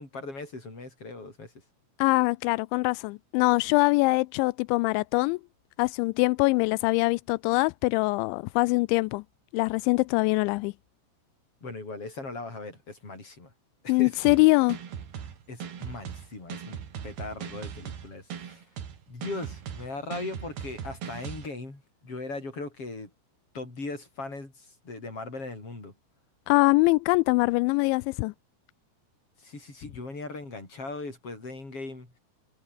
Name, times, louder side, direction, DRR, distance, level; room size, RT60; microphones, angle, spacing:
voice 1, 0.0-1.5 11.6-13.5 13.8-14.4 15.5-18.6 19.1-23.1 23.5-25.9 29.4-32.2, left 3 dB, 25° left, 8.8 m, -39 dB
voice 2, 2.0-5.4 5.8-9.2 9.5-10.7 13.9-14.8 26.5-28.3, left 24 dB, 85° left, 2.6 m, -23 dB
sound 1, 14.3-21.5, right 8 dB, 55° right, 4.9 m, -39 dB
omnidirectional pair, 5.7 m